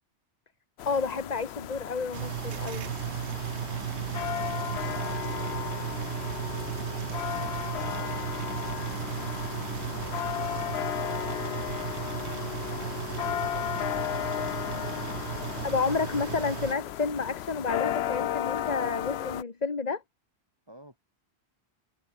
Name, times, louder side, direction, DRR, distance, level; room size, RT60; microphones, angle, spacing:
sound 1, 0.8-19.4, left 11 dB, 70° left, 0.9 m, -34 dB
voice 1, 0.8-2.9 15.6-20.0, left 4 dB, 40° left, 1.6 m, -30 dB
sound 2, 2.1-16.7, right 11 dB, 80° right, 1.0 m, -35 dB
voice 2, 3.9-10.5 10.9-16.2 20.7-21.0, right 1 dB, 20° right, 5.6 m, -53 dB
omnidirectional pair, 1.1 m